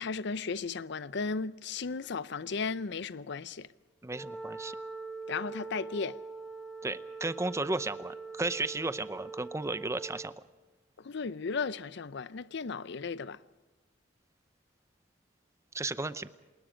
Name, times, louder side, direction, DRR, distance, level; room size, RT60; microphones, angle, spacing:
voice 1, 0.0-3.7 5.3-6.2 11.0-13.4, left 4 dB, 65° left, 0.6 m, -35 dB
voice 2, 4.0-4.8 6.8-10.3 15.7-16.3, right 2 dB, 15° right, 0.7 m, -34 dB
Wind instrument woodwind instrument, 4.1-10.4, right 4 dB, 5° left, 1.4 m, -43 dB
27.0 x 20.5 x 5.1 m
head